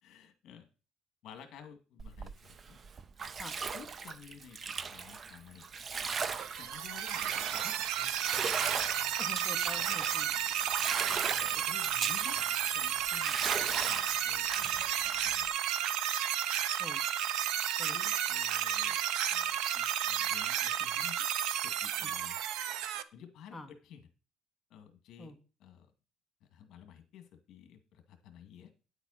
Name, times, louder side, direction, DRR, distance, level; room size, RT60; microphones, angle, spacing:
voice 1, 0.0-0.7 1.2-2.8 3.7-5.7 6.5-7.9 10.6-10.8 11.6-15.5 17.8-19.0 19.3-21.3 21.6-22.4 23.1-24.1 24.7-25.9 26.4-28.7, left 8 dB, 55° left, 8 dB, 2.1 m, -53 dB
Bathtub (filling or washing), 2.0-15.5, right 5 dB, 25° right, 0.5 m, -38 dB
sound 1, 6.4-23.0, right 10 dB, 75° right, 0.8 m, -32 dB
voice 2, 9.2-10.3 11.5-11.6 16.8-17.0 17.8-18.0 22.0-22.1 23.5-23.7 25.2-25.4, left 2 dB, 5° left, 3 dB, 1.0 m, -45 dB
9.8 x 8.1 x 4.2 m, 0.35 s
cardioid pair, 180°, 0 cm